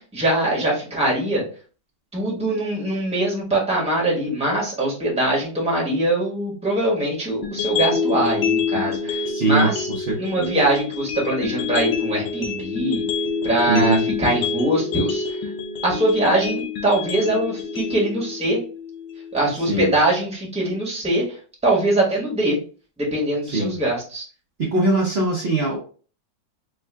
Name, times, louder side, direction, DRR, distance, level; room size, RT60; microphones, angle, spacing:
voice 1, 0.0-1.4 2.1-9.9 10.2-13.0 13.4-15.2 15.8-18.6 19.3-21.2 21.6-22.6 23.0-24.2, right 1 dB, 5° right, -4 dB, 1.0 m, -22 dB
sound 1, 7.4-19.4, left 5 dB, 90° left, 1.4 m, -27 dB
voice 2, 9.3-10.6 13.7-14.0 19.6-19.9 23.4-23.7 24.6-25.8, right 2 dB, 50° right, -3 dB, 0.7 m, -22 dB
3.6 x 2.3 x 3.4 m, 0.40 s
omnidirectional pair, 2.0 m